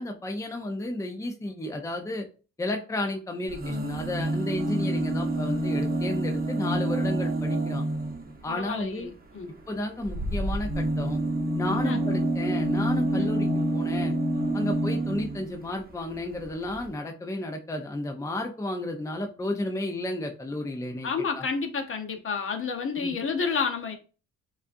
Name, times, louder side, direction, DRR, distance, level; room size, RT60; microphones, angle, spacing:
voice 1, 0.0-2.3 2.6-7.8 8.4-9.1 9.7-11.2 11.6-14.1 14.5-21.1 21.4-21.5 23.0-23.1, left 1 dB, 10° left, 3 dB, 0.7 m, -32 dB
sound 1, 3.5-8.4 10.0-15.5 16.4-16.5 16.7-16.8, right 1 dB, 30° right, 0.9 m, -27 dB
voice 2, 8.5-9.5 11.7-12.0 13.1-13.3 21.0-24.0, left 5 dB, 45° left, 4 dB, 1.0 m, -30 dB
7.2 x 2.5 x 2.6 m, 0.36 s
cardioid pair, 90°, 30 cm